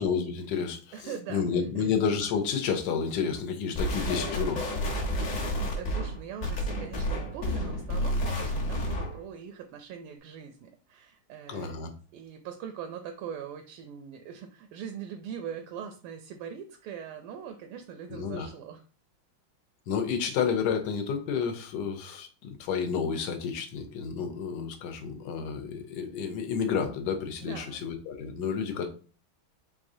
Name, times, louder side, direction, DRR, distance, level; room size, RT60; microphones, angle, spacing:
voice 1, 0.0-4.9 11.5-11.9 18.1-18.5 19.9-28.9, left 6 dB, 65° left, 6 dB, 1.1 m, -30 dB
voice 2, 0.9-1.9 5.3-11.8 12.1-18.8 27.4-27.8, right 8 dB, 85° right, 6 dB, 1.5 m, -42 dB
sound 1, 3.8-9.2, equal, 45° left, 1.2 m, -30 dB
4.8 x 3.7 x 2.6 m, 0.38 s
omnidirectional pair, 2.4 m